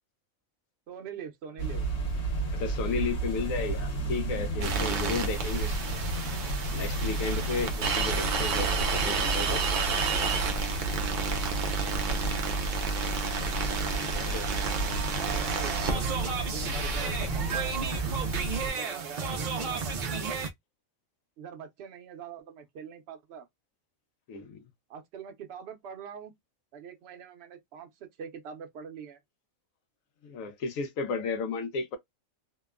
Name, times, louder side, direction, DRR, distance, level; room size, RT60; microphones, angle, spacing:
voice 1, 0.9-1.9 5.3-5.6 13.7-13.9 15.0-16.0 16.5-18.0 18.6-20.4 21.4-23.5 24.9-26.3 26.7-29.2, right 7 dB, 60° right, 0.8 m, -43 dB
sound 1, 1.6-18.7, right 2 dB, 55° left, 1.3 m, -32 dB
voice 2, 2.5-5.8 6.7-9.7 14.1-14.5 24.3-24.6 30.2-32.0, left 4 dB, 75° left, 1.0 m, -33 dB
sound 2, 4.6-20.5, right 5 dB, 80° right, 0.4 m, -31 dB
2.8 x 2.1 x 2.2 m
omnidirectional pair, 1.4 m